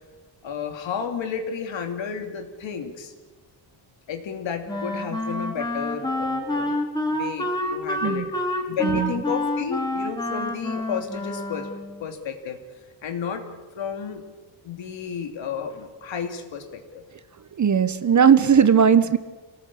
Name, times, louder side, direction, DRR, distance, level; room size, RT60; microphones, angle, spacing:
voice 1, 0.4-3.1 4.1-8.3 8.7-11.7 12.0-12.6 13.0-13.5 13.8-14.4 14.6-17.0, left 7 dB, 75° left, 5 dB, 3.0 m, -32 dB
Wind instrument woodwind instrument, 4.7-12.1, left 1 dB, 10° left, 3.2 m, -28 dB
voice 2, 8.8-9.2 17.6-19.2, right 7 dB, 40° right, 12 dB, 1.1 m, -18 dB
26.0 x 18.0 x 8.6 m, 1.3 s
cardioid pair, 120°, 46 cm